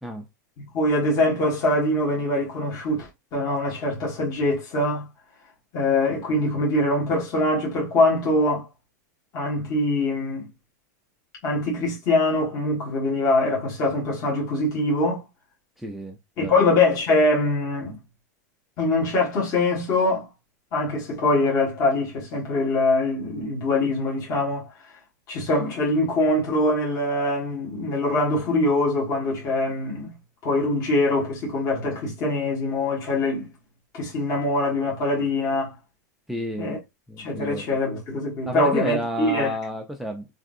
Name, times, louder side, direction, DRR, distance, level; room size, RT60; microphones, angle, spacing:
voice 1, 0.7-5.1 5.7-8.7 9.3-10.5 11.4-15.2 16.4-18.0 18.8-20.3 20.7-24.7 25.3-30.1 30.4-33.5 33.9-35.7 36.6-36.8 37.2-39.5, left 2 dB, 40° left, 1.4 m, -23 dB
voice 2, 15.8-16.6 36.3-36.8 37.1-37.7 38.5-40.3, right 1 dB, ahead, 0.3 m, -31 dB
3.5 x 2.5 x 2.5 m
supercardioid pair, 140°, 10 cm